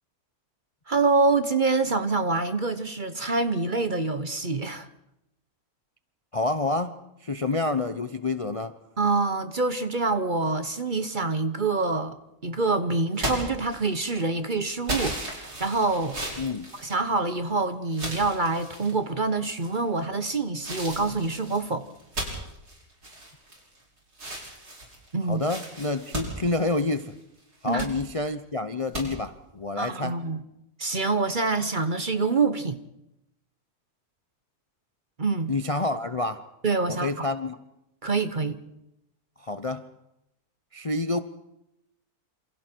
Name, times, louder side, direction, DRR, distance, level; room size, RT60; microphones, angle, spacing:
voice 1, 0.9-4.9 9.0-12.2 12.4-16.2 16.8-21.9 25.1-25.4 27.6-27.9 29.8-30.4 30.8-32.8 35.2-35.5 36.6-37.3 38.0-38.6, right 3 dB, 35° right, 1.1 m, -26 dB
voice 2, 6.3-6.9 7.2-8.7 16.4-16.7 25.3-27.1 27.6-30.2 35.5-36.4 36.9-37.6 39.4-39.9 40.7-41.2, left 2 dB, 30° left, 0.7 m, -28 dB
sound 1, 13.1-14.2 14.9-17.5 17.9-18.9 19.6-20.0 20.6-23.8 24.1-27.1 27.5-27.9 28.9-29.0, right 1 dB, 90° right, 6.3 m, -35 dB
28.0 x 28.0 x 4.6 m
omnidirectional pair, 1.6 m